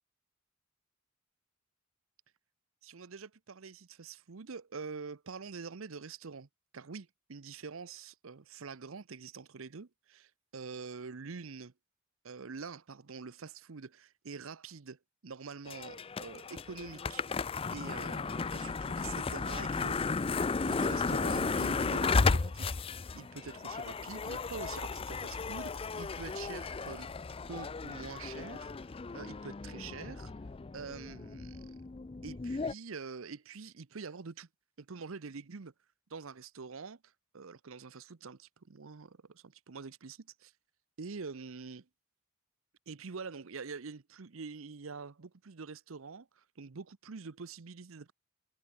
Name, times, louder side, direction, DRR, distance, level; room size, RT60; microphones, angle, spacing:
voice 1, 2.8-6.5 6.7-11.7 12.2-17.4 17.7-22.7 23.1-27.1 27.5-30.3 30.7-31.7 32.2-34.5 34.8-35.7 36.1-37.0 37.3-40.5 41.0-41.9 42.9-48.1, right 5 dB, 70° right, 0.7 m, -45 dB
sound 1, 15.7-32.7, left 4 dB, 25° left, 0.4 m, -34 dB
head